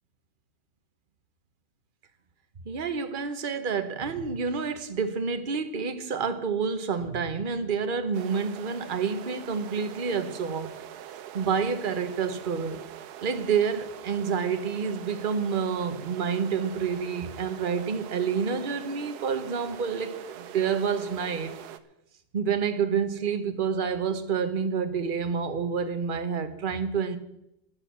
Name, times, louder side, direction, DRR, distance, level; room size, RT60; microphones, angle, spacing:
voice 1, 2.6-10.7 11.3-12.8 13.2-21.6 22.3-27.2, right 6 dB, 40° right, 0.8 m, -28 dB
sound 1, 8.1-21.8, right 10 dB, 65° right, 1.1 m, -43 dB
10.5 x 10.5 x 7.2 m
omnidirectional pair, 2.0 m